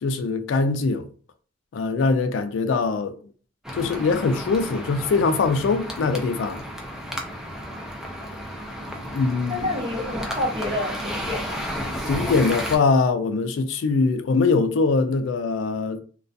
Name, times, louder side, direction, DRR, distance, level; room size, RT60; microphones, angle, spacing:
voice 1, 0.0-1.1 1.7-3.2 3.8-6.6 9.1-9.7 11.8-16.0, left 4 dB, 70° left, 0.3 m, -22 dB
sound 1, 3.6-12.8, equal, 5° right, 0.3 m, -32 dB
voice 2, 9.5-11.6, left 1 dB, 25° right, 0.8 m, -28 dB
2.3 x 2.2 x 2.5 m
head